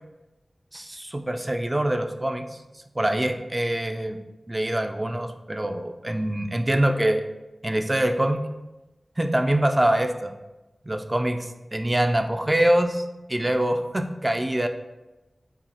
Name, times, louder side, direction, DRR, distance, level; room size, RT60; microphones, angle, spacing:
voice 1, 0.7-2.5 3.0-4.2 4.5-7.2 7.6-8.4 9.2-10.3 10.9-14.7, right 1 dB, 25° right, 6 dB, 0.3 m, -24 dB
5.6 x 2.3 x 2.9 m, 1.0 s
wide cardioid pair, 65°, 0 cm